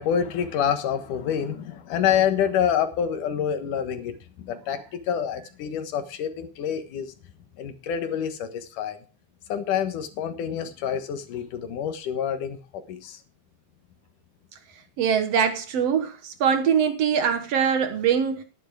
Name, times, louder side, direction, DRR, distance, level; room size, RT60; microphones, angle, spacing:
voice 1, 0.0-7.1 7.6-9.0 9.5-13.2, left 8 dB, 85° left, 3.0 m, -27 dB
voice 2, 15.0-18.4, right 7 dB, 60° right, 2.0 m, -23 dB
11.5 x 10.5 x 4.8 m
omnidirectional pair, 3.5 m